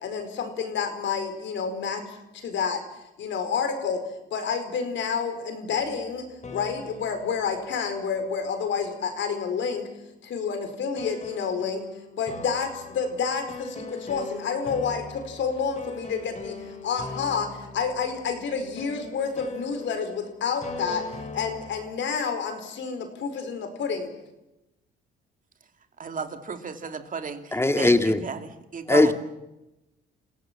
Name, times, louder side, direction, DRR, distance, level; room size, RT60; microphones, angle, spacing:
voice 1, 0.0-2.8 3.2-4.0 4.3-9.8 10.2-11.8 12.2-21.0 21.3-24.1, left 6 dB, 70° left, 7 dB, 4.6 m, -29 dB
sound 1, 5.7-8.7 11.0-22.0, left 3 dB, 35° left, 4.0 m, -41 dB
voice 2, 26.0-29.1, right 5 dB, 40° right, 7 dB, 2.7 m, -34 dB
voice 3, 27.5-28.3 28.9-29.1, left 2 dB, 10° left, 8 dB, 2.0 m, -19 dB
28.5 x 17.0 x 7.5 m, 0.96 s
cardioid pair, 90°, 20 cm